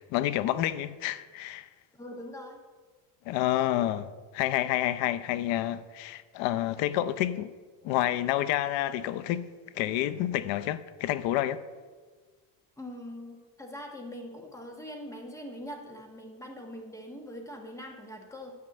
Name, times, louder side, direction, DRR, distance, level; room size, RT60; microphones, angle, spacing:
voice 1, 0.0-1.7 3.3-7.5 7.8-9.5 9.7-11.6, left 13 dB, 80° left, 0.7 m, -29 dB
voice 2, 1.9-2.6 12.8-18.5, equal, 5° left, 1.2 m, -42 dB
9.5 x 5.4 x 7.8 m
cardioid pair, 155°, 44 cm